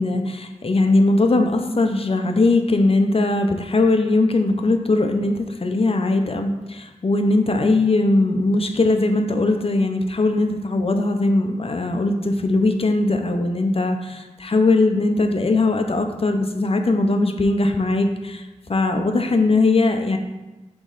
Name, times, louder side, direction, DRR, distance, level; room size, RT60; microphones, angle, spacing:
voice 1, 0.0-20.2, left 2 dB, 50° left, 6 dB, 0.6 m, -20 dB
8.2 x 3.1 x 3.9 m, 1.1 s
wide cardioid pair, 70°, 13 cm